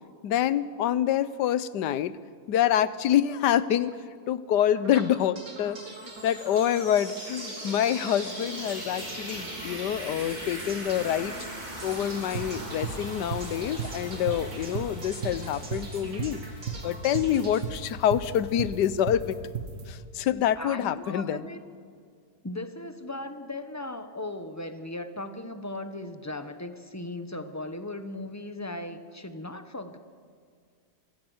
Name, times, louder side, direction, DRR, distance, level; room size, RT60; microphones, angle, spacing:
voice 1, 0.2-2.2 2.5-3.9 4.3-5.8 6.2-11.3 11.8-16.4 16.8-19.4 19.9-21.5, left 10 dB, 90° left, 16 dB, 1.4 m, -26 dB
sound 1, 4.8-18.8, right 2 dB, 85° right, 3.9 m, -45 dB
sound 2, 5.8-17.5, right 1 dB, 25° right, 3.6 m, -40 dB
sound 3, 12.3-19.8, right 6 dB, 50° right, 1.8 m, -34 dB
voice 2, 20.6-21.6 22.4-30.0, left 2 dB, 15° left, 9 dB, 0.8 m, -37 dB
25.0 x 15.5 x 8.0 m, 2.1 s
omnidirectional pair, 1.8 m